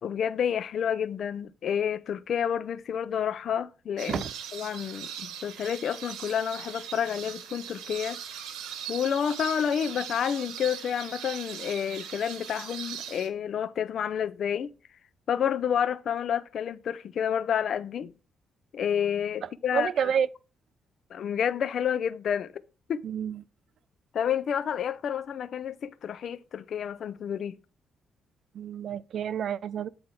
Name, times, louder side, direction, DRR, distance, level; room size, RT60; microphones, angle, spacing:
voice 1, 0.0-4.2 4.5-8.2 8.9-14.7 15.3-18.1 18.7-19.9 21.1-22.5 22.9-23.0 24.1-27.6, left 8 dB, 60° left, 0.5 m, -29 dB
sound 1, 4.0-13.3, right 9 dB, 90° right, 1.0 m, -40 dB
voice 2, 19.4-20.3 23.0-23.4 28.5-29.9, right 8 dB, 60° right, 0.4 m, -29 dB
9.5 x 3.5 x 4.5 m
cardioid pair, 90°, 0 cm